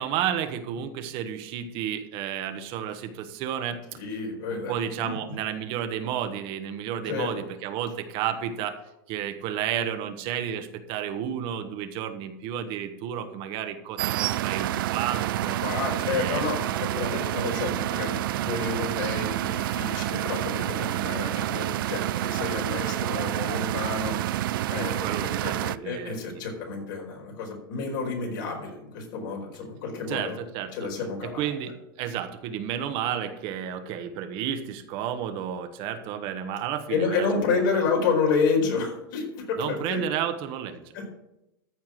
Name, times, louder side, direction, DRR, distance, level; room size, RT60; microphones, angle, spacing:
voice 1, 0.0-4.0 4.5-8.8 9.1-15.6 16.1-16.4 20.8-21.1 24.9-26.4 30.1-30.7 31.2-37.6 39.6-40.8, right 9 dB, 50° right, 8 dB, 1.3 m, -32 dB
voice 2, 3.9-4.8 5.0-5.1 7.0-7.3 15.6-24.2 24.7-30.4 30.7-31.5 36.9-40.0 40.9-41.1, left 5 dB, 70° left, 0 dB, 4.6 m, -29 dB
sound 1, 14.0-25.8, right 14 dB, 75° right, 0.4 m, -28 dB
14.0 x 4.7 x 7.6 m, 0.87 s
hypercardioid pair, 125°, 12 cm